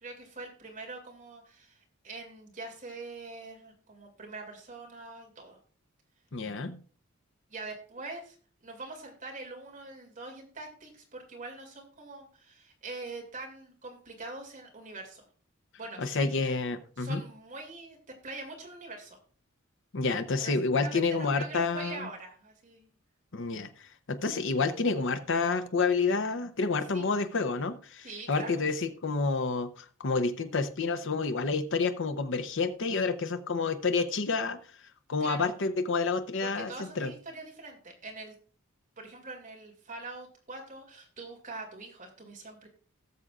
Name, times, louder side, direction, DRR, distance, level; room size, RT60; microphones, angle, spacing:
voice 1, 0.0-5.6 7.5-8.4 8.6-15.3 15.8-16.3 17.0-18.0 18.2-19.2 20.4-22.9 26.9-27.2 28.0-28.7 35.2-35.6 36.4-38.3 39.0-42.7, right 3 dB, 40° right, 1 dB, 2.5 m, -43 dB
voice 2, 6.3-6.8 16.0-17.2 19.9-22.1 23.3-23.7 24.1-34.6 35.1-37.1, left 4 dB, 60° left, 9 dB, 0.8 m, -29 dB
18.0 x 6.7 x 2.5 m, 0.42 s
head